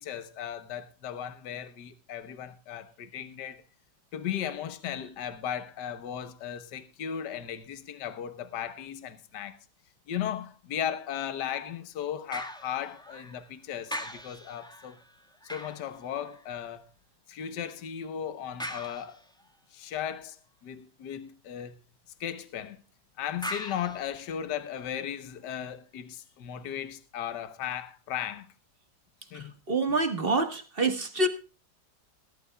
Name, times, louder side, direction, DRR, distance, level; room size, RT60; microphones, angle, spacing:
voice 1, 0.0-3.6 4.1-9.6 10.1-15.0 15.5-16.8 17.3-19.2 19.7-20.4 20.6-21.8 22.2-22.8 23.2-28.5 29.3-29.5, left 9 dB, 75° left, 1.6 m, -36 dB
sound 1, 12.3-13.5 13.9-16.7 18.6-19.6 23.4-24.9 25.4-25.5, equal, 5° left, 1.4 m, -42 dB
voice 2, 29.3-31.3, right 2 dB, 35° right, 1.6 m, -27 dB
20.5 x 12.5 x 2.3 m
omnidirectional pair, 1.9 m